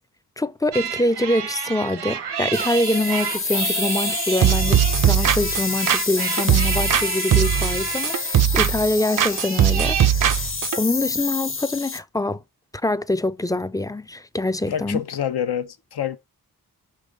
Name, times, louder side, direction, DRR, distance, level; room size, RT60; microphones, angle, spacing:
voice 1, 0.4-10.5 10.8-12.4 12.8-15.0, left 2 dB, 10° left, 0.3 m, -24 dB
sound 1, 0.7-10.1, right 7 dB, 90° right, 0.8 m, -30 dB
sound 2, 2.5-12.0, left 4 dB, 30° left, 0.9 m, -28 dB
sound 3, 4.4-7.1 7.3-8.9 9.2-10.8, right 10 dB, 55° right, 0.5 m, -19 dB
voice 2, 14.7-16.2, left 9 dB, 75° left, 0.8 m, -27 dB
5.3 x 3.6 x 5.1 m
cardioid pair, 65°, 39 cm